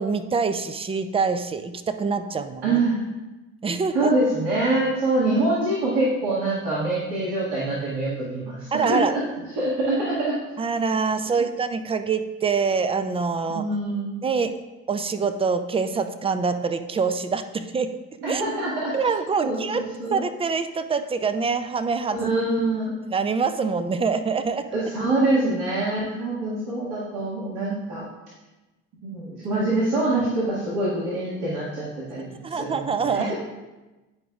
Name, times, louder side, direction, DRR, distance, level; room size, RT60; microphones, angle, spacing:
voice 1, 0.0-2.8 3.6-4.1 8.7-9.2 10.6-13.7 14.2-14.6 14.9-17.9 18.3-18.4 18.9-22.3 23.1-24.7 32.4-33.3, right 5 dB, 15° right, 10 dB, 0.3 m, -25 dB
voice 2, 2.6-3.0 3.9-9.2 9.6-10.4 11.4-11.5 13.5-14.2 18.2-19.0 19.4-20.2 22.1-22.9 24.7-28.1 29.0-33.4, right 2 dB, 65° right, -8 dB, 1.9 m, -25 dB
10.5 x 4.9 x 2.4 m, 1.1 s
hypercardioid pair, 65°, 44 cm